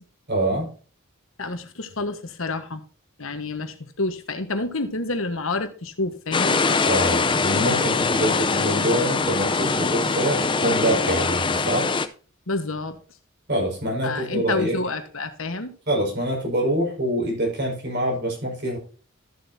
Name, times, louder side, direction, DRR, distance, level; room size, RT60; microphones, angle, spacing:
voice 1, 0.3-0.7 6.8-11.9 13.5-14.8 15.9-18.8, right 1 dB, 50° right, 5.5 m, -25 dB
voice 2, 1.4-2.8 3.2-6.6 12.5-13.0 14.0-15.7, left 2 dB, 70° left, 1.4 m, -28 dB
sound 1, 6.3-12.1, left 4 dB, 20° left, 0.6 m, -22 dB
13.5 x 7.8 x 2.7 m
head